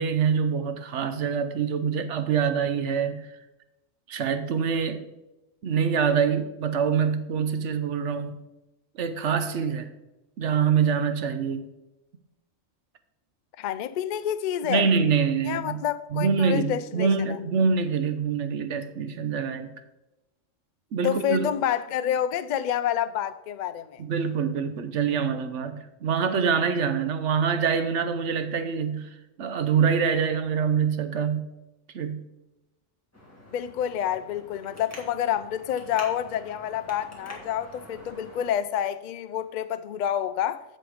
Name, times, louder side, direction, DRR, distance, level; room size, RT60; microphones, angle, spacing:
voice 1, 0.0-3.3 4.1-5.1 5.6-8.3 8.9-9.9 10.4-11.7 14.7-15.8 16.1-19.7 20.9-21.5 24.0-29.1 29.4-31.5 31.9-32.3, right 6 dB, 65° right, 1.0 m, -25 dB
voice 2, 13.6-14.9 15.4-17.4 21.0-24.0 33.5-40.6, left 10 dB, 85° left, 0.4 m, -28 dB
Traffic noise roadway noise, 33.1-38.5, left 1 dB, 10° left, 1.9 m, -46 dB
7.7 x 6.7 x 5.0 m
omnidirectional pair, 1.3 m